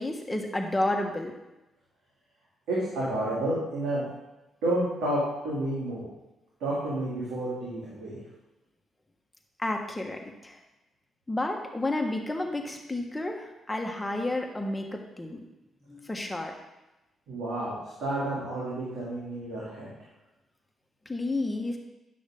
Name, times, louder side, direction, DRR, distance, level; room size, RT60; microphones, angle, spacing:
voice 1, 0.0-1.3 9.6-10.6 11.3-15.4 15.9-16.5 21.0-21.8, left 2 dB, 15° left, 2 dB, 1.6 m, -31 dB
voice 2, 2.7-4.0 4.6-6.1 6.6-8.2 17.3-19.9, right 1 dB, 85° right, -9 dB, 2.9 m, -30 dB
10.5 x 6.2 x 3.8 m, 0.99 s
supercardioid pair, 60°, 0 cm